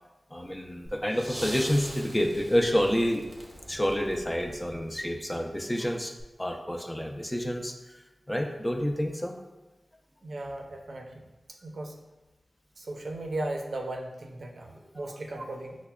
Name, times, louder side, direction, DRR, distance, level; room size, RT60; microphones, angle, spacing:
voice 1, 0.3-3.3 3.7-6.1 6.4-8.0 8.3-9.4 14.7-15.1, equal, 10° left, 3 dB, 0.4 m, -29 dB
sound 1, 1.1-5.0 6.2-6.3, right 1 dB, 25° right, 0.7 m, -43 dB
voice 2, 10.2-11.2 11.6-12.0 12.8-15.8, right 2 dB, 75° right, 1 dB, 0.5 m, -36 dB
5.6 x 2.1 x 2.2 m, 1.1 s
wide cardioid pair, 80°, 0 cm